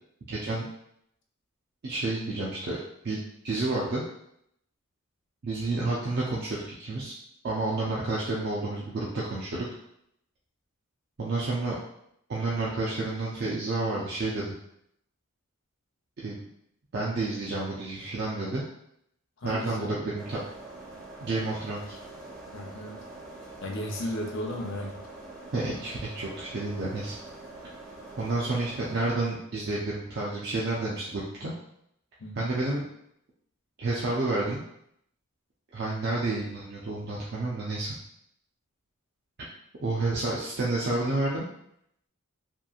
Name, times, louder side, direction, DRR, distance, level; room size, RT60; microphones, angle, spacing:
voice 1, 0.3-0.7 1.8-2.8 3.0-3.2 3.4-4.0 5.4-7.1 7.4-9.7 11.2-11.8 12.3-14.5 16.2-16.4 16.9-18.7 19.4-20.4 21.2-22.0 25.5-27.2 28.2-31.5 32.4-32.8 33.8-34.6 35.7-38.0 39.8-41.5, right 2 dB, 50° right, -5 dB, 0.5 m, -30 dB
voice 2, 19.4-19.9 22.5-23.1 23.6-25.0 32.2-32.5, left 1 dB, 60° left, 1 dB, 0.5 m, -35 dB
sound 1, 20.2-29.1, right 2 dB, ahead, 0.5 m, -45 dB
2.9 x 2.5 x 2.3 m, 0.74 s
head